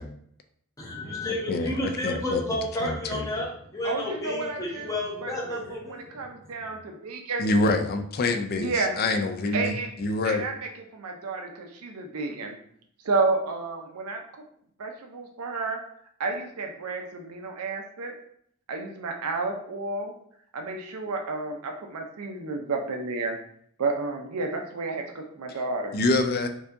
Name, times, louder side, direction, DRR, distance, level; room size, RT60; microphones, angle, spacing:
voice 1, 0.8-6.5, left 1 dB, 15° left, -4 dB, 0.7 m, -32 dB
voice 2, 1.5-2.4 2.8-3.3 7.4-10.5 25.9-26.5, left 2 dB, 45° left, 7 dB, 0.4 m, -26 dB
voice 3, 3.8-4.9 5.2-7.4 8.5-9.0 9.5-9.9 10.2-12.6 13.0-14.2 14.8-15.8 16.2-18.1 18.7-20.2 20.5-23.4 23.8-26.0, right 3 dB, 90° right, 3 dB, 0.5 m, -31 dB
4.4 x 2.7 x 2.5 m, 0.65 s
head